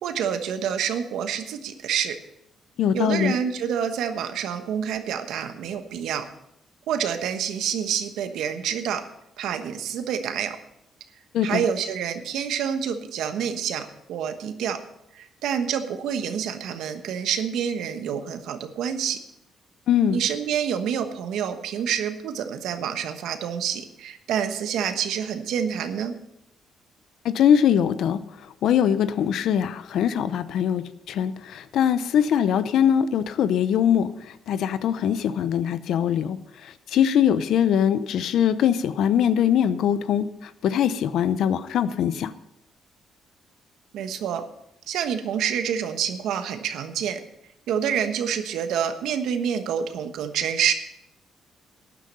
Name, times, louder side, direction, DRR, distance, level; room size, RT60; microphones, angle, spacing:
voice 1, 0.0-2.2 2.9-6.3 6.9-9.1 9.4-10.6 11.4-14.8 15.1-19.2 20.1-26.1 43.9-44.4 44.9-47.2 47.7-50.7, right 8 dB, 85° right, 8 dB, 1.2 m, -27 dB
voice 2, 2.8-3.3 11.3-11.6 19.9-20.2 27.2-28.2 28.6-34.1 34.5-36.4 36.9-40.3 40.6-42.3, left 9 dB, 75° left, 14 dB, 0.7 m, -22 dB
13.0 x 10.0 x 5.5 m, 0.82 s
cardioid pair, 90°, 0 cm